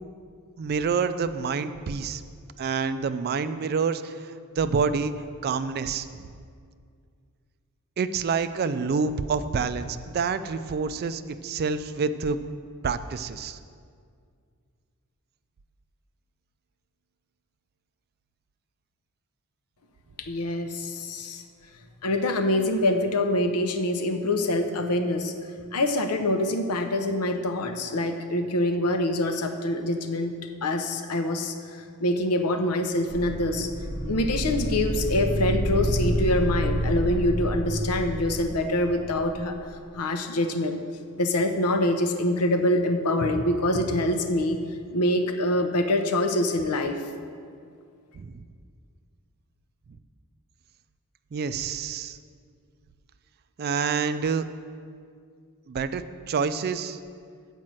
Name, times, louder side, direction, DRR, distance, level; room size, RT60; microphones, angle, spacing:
voice 1, 0.6-2.2 2.6-5.1 5.4-6.1 8.0-12.4 12.8-13.6 48.1-48.4 51.3-52.2 53.6-54.4 55.7-57.0, right 5 dB, 45° right, 12 dB, 0.3 m, -27 dB
voice 2, 20.2-21.4 22.0-25.3 25.7-30.3 30.6-33.7 34.1-39.6 39.9-40.8 41.2-44.6 44.9-47.0, left 1 dB, 85° left, 6 dB, 0.7 m, -25 dB
sound 1, 33.1-39.3, equal, 15° right, 0.9 m, -28 dB
7.5 x 5.3 x 7.5 m, 2.2 s
head